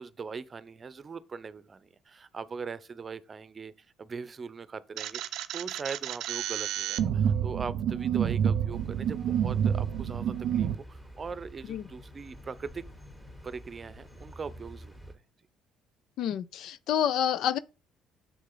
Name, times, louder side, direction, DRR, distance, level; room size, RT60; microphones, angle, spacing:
voice 1, 0.0-12.8 13.4-15.0, right 5 dB, 35° right, 0.7 m, -40 dB
sound 1, 5.0-10.8, right 9 dB, 70° right, 0.6 m, -29 dB
sound 2, 8.7-15.1, equal, 20° left, 3.2 m, -49 dB
voice 2, 16.2-17.6, left 9 dB, 70° left, 0.5 m, -28 dB
6.5 x 6.3 x 3.9 m
supercardioid pair, 70°, 0 cm